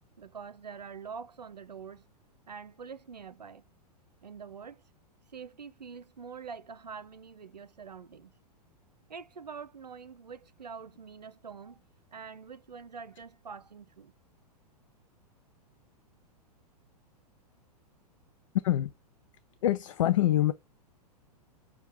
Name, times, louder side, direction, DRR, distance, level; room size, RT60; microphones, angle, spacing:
voice 1, 0.2-2.0 2.5-3.7 4.2-4.8 5.3-8.3 9.1-11.8 12.1-14.1, right 6 dB, 80° right, 0.5 m, -45 dB
voice 2, 19.6-20.5, left 13 dB, 50° left, 0.4 m, -25 dB
6.3 x 2.5 x 3.4 m
figure-of-eight pair, 100°, 21 cm